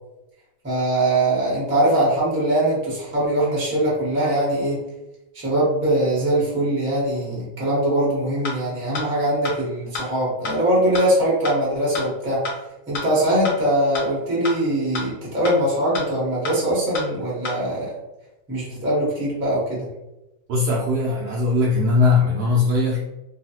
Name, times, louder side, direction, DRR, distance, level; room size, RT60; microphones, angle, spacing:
voice 1, 0.6-4.8 5.3-12.4 12.9-18.0 18.5-19.9, right 1 dB, 10° right, -6 dB, 0.6 m, -22 dB
sound 1, 8.4-8.5 8.9-9.0 9.4-9.5 9.9-10.0 10.4-10.5 10.9-11.0 11.4-11.5 11.9-12.0 12.4-12.5 12.9-13.0 13.4-13.5 13.9-14.0 14.4-14.5 14.9-15.0 15.4-15.5 15.9-16.0 16.4-16.5 16.9-17.0 17.4-17.5, left 3 dB, 60° left, 0.9 m, -28 dB
voice 2, 20.5-23.1, left 3 dB, 75° right, -4 dB, 0.9 m, -20 dB
3.0 x 2.4 x 2.8 m, 0.97 s
omnidirectional pair, 2.2 m